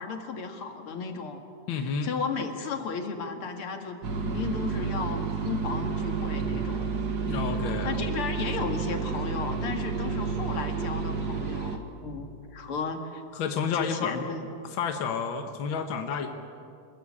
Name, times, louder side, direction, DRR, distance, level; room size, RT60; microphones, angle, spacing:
voice 1, 0.0-1.4 1.8-6.9 7.8-12.3 12.5-13.2 13.7-14.4, left 5 dB, 85° left, 5 dB, 2.8 m, -34 dB
voice 2, 1.7-2.1 7.3-8.1 13.3-14.1 14.6-16.3, left 6 dB, 65° left, 5 dB, 2.1 m, -30 dB
sound 1, 4.0-11.8, right 5 dB, 50° right, 2.2 m, -30 dB
26.5 x 21.0 x 8.7 m, 2.5 s
omnidirectional pair, 2.3 m